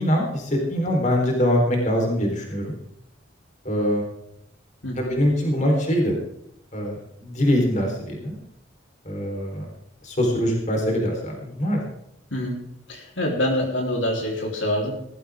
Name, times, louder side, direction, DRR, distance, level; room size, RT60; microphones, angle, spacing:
voice 1, 0.0-2.7 3.6-4.0 5.0-6.2 6.7-8.4 9.0-9.7 10.0-11.8, equal, 35° left, 1 dB, 4.1 m, -23 dB
voice 2, 4.8-5.2 12.3-12.6 12.9-14.9, left 1 dB, 70° left, -1 dB, 3.8 m, -25 dB
18.5 x 14.0 x 3.7 m, 0.77 s
head